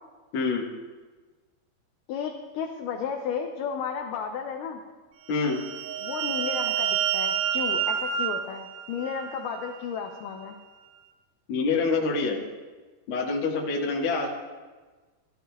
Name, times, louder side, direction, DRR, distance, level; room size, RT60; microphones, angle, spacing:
voice 1, 0.3-0.7 5.3-5.6 11.5-12.4 13.1-14.3, left 4 dB, 60° left, -2 dB, 1.3 m, -26 dB
voice 2, 2.1-4.8 6.0-10.6, left 7 dB, 85° left, 3 dB, 1.8 m, -33 dB
sound 1, 5.3-9.8, right 9 dB, 85° right, 2.7 m, -29 dB
16.0 x 12.0 x 2.3 m, 1.3 s
omnidirectional pair, 4.6 m